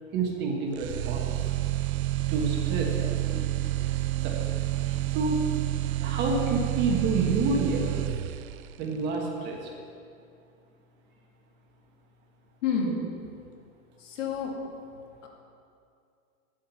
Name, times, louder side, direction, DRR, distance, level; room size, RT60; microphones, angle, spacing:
voice 1, 0.1-1.5 2.3-3.6 4.2-5.5 6.0-8.1 8.8-9.7 12.8-12.9, right 4 dB, 25° right, 0 dB, 1.3 m, -29 dB
sound 1, 0.8-8.7, right 15 dB, 75° right, 0.6 m, -29 dB
voice 2, 12.6-13.0 14.0-14.5 15.2-15.3, left 6 dB, 60° left, 0 dB, 2.4 m, -29 dB
9.3 x 8.6 x 7.0 m, 2.4 s
supercardioid pair, 155°, 42 cm